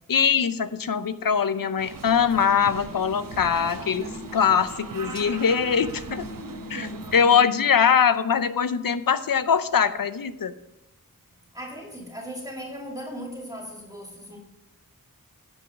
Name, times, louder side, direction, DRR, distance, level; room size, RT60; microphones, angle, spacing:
voice 1, 0.1-6.2 6.7-10.5, left 7 dB, 80° left, 13 dB, 0.6 m, -22 dB
sound 1, 1.8-7.3, right 4 dB, 75° right, 0.8 m, -39 dB
sound 2, 2.1-7.8, left 2 dB, 35° left, 0.8 m, -42 dB
voice 2, 11.5-14.4, equal, 10° right, 0 dB, 2.2 m, -37 dB
9.9 x 5.5 x 5.7 m, 0.93 s
wide cardioid pair, 40°, 34 cm